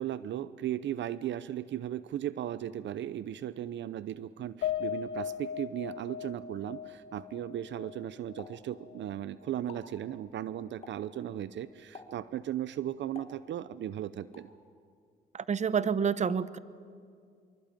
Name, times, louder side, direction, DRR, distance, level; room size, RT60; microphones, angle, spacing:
voice 1, 0.0-14.5, right 11 dB, 65° right, 16 dB, 0.7 m, -36 dB
Piano, 4.6-9.1 9.5-9.6 10.0-10.1, left 9 dB, 75° left, 3.0 m, -38 dB
Explosion, 8.4-9.2 9.5-10.0 10.8-11.2 11.9-12.3 13.1-13.8 14.3-14.6, left 3 dB, 30° left, 3.7 m, -50 dB
voice 2, 15.3-16.6, right 6 dB, 35° right, 16 dB, 0.9 m, -28 dB
25.5 x 24.0 x 9.0 m, 2.3 s
cardioid pair, 90°, 20 cm